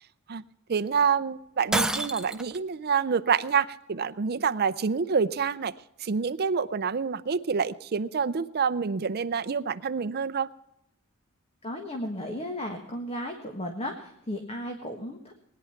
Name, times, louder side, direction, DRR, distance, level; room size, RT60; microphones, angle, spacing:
voice 1, 0.7-5.7 6.0-10.5, right 6 dB, 45° right, 0.5 m, -27 dB
Shatter, 1.7-2.6, right 2 dB, 5° right, 0.8 m, -27 dB
voice 2, 11.6-15.3, equal, 30° left, 1.5 m, -35 dB
20.5 x 10.0 x 5.8 m
head